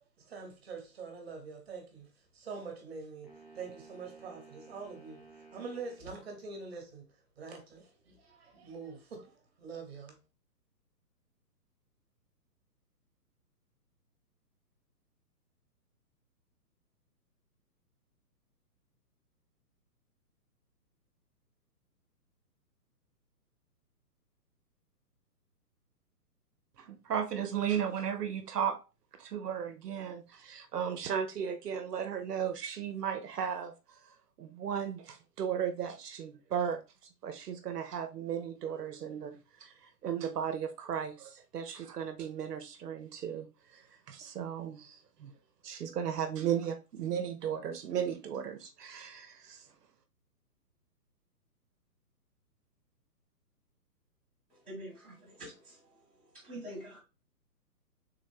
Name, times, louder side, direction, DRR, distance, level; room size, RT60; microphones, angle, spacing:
voice 1, 0.2-7.1 7.4-10.2, right 4 dB, 40° right, 1.0 m, -45 dB
sound 1, 3.2-6.1, right 3 dB, 80° left, 1.6 m, -55 dB
voice 2, 26.8-28.8 29.2-33.7 34.0-36.8 37.2-45.3 45.6-49.7, right 8 dB, 70° right, 0.7 m, -35 dB
voice 3, 54.7-55.8 56.3-57.0, equal, 5° left, 1.0 m, -45 dB
3.5 x 2.2 x 3.4 m
hypercardioid pair, 155°, 49 cm